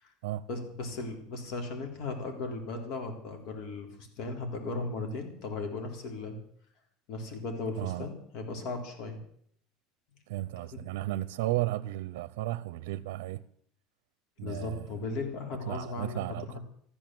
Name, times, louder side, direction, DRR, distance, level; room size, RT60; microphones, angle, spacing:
voice 1, 0.5-6.4 7.1-9.2 10.7-10.8 14.4-16.2 16.5-16.6, left 3 dB, 55° left, 3.8 m, -37 dB
voice 2, 7.8-8.1 10.3-13.4 14.4-14.9 15.7-16.6, right 16 dB, 85° right, 0.7 m, -34 dB
14.5 x 12.5 x 7.8 m
cardioid pair, 150°, 0 cm